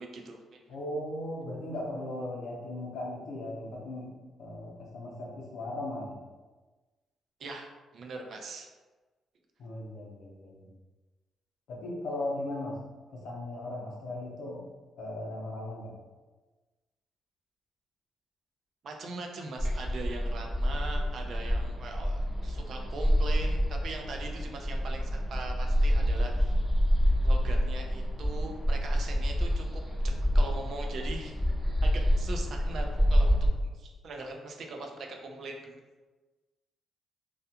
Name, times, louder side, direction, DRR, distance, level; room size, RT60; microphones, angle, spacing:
voice 1, 0.0-0.6 7.4-7.7 7.9-8.7 18.8-26.6 27.2-29.8 30.3-31.3 31.8-33.4 33.7-35.8, right 3 dB, 50° right, 2 dB, 0.3 m, -41 dB
voice 2, 0.7-6.2 9.6-10.6 11.7-12.8 13.1-14.6 15.0-16.0, left 1 dB, 75° left, -3 dB, 0.6 m, -37 dB
sound 1, 19.6-33.5, equal, ahead, 0.7 m, -27 dB
2.3 x 2.2 x 2.7 m, 1.2 s
cardioid pair, 160°, 0 cm